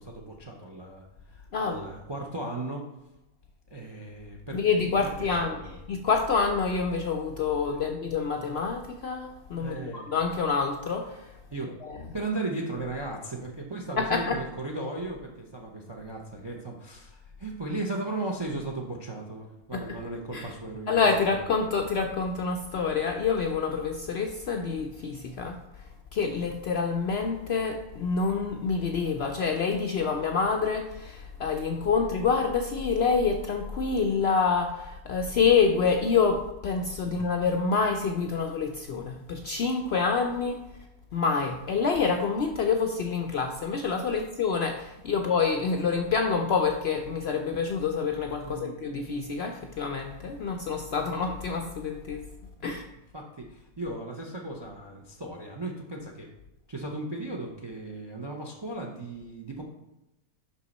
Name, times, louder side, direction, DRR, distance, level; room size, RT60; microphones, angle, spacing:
voice 1, 0.0-2.9 3.7-4.8 5.0-5.7 9.6-10.1 11.5-11.7 12.1-21.4 37.1-37.2 44.1-44.2 48.4-48.8 53.1-56.3 56.7-59.6, right 2 dB, 35° right, 1 dB, 0.4 m, -36 dB
voice 2, 1.5-1.9 4.5-5.6 5.9-11.3 11.8-12.0 14.0-14.4 19.7-20.0 20.3-20.5 20.9-25.6 26.1-40.6 41.1-52.2 52.6-52.9, left 5 dB, 65° left, 4 dB, 0.6 m, -27 dB
5.6 x 5.6 x 4.1 m, 0.93 s
omnidirectional pair, 1.5 m